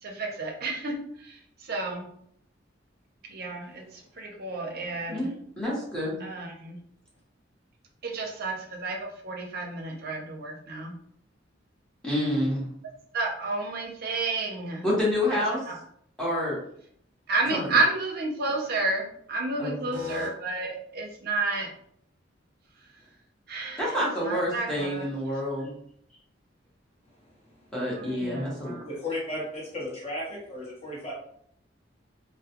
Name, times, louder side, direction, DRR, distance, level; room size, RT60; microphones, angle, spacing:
voice 1, 0.0-2.1 3.2-5.3 6.2-6.8 8.0-10.9 13.1-14.9 15.7-15.8 17.3-21.7 23.5-23.9 24.2-25.1 27.9-28.8, right 3 dB, 55° right, 1 dB, 0.5 m, -31 dB
voice 2, 5.6-6.2 12.0-12.7 14.8-15.6 16.2-16.6 17.5-17.8 19.6-20.0 23.8-25.7 27.7-28.8, left 1 dB, 5° left, -7 dB, 0.8 m, -28 dB
voice 3, 19.9-20.3 23.6-23.8 28.8-31.1, left 2 dB, 35° left, -4 dB, 0.9 m, -35 dB
2.2 x 2.1 x 2.8 m, 0.67 s
head